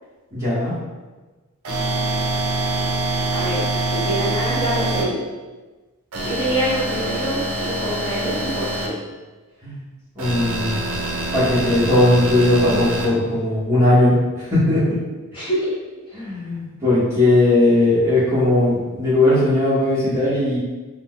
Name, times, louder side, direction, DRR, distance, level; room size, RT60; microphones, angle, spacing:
voice 1, 0.3-0.7 9.6-9.8 10.1-10.8 11.3-15.0 16.1-20.6, left 1 dB, 10° right, -12 dB, 1.0 m, -18 dB
sound 1, 1.6-5.0 6.1-8.9 10.2-13.1, right 2 dB, 65° right, 0.6 m, -25 dB
voice 2, 3.3-5.2 6.2-8.9 15.3-16.2, right 1 dB, 20° left, -10 dB, 1.0 m, -26 dB
2.6 x 2.1 x 3.6 m, 1.2 s
head